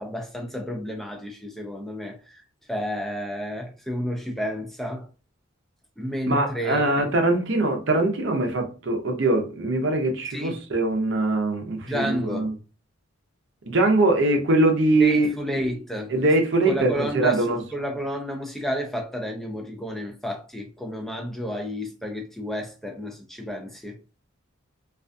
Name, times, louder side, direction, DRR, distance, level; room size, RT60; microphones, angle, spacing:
voice 1, 0.0-2.4 2.7-5.1 6.0-7.1 10.3-10.6 11.9-12.5 15.0-16.1 16.7-24.0, equal, ahead, 0.4 m, -31 dB
voice 2, 6.3-12.5 13.7-15.6 16.1-17.6, right 2 dB, 60° right, 0.6 m, -22 dB
2.4 x 2.2 x 2.5 m
head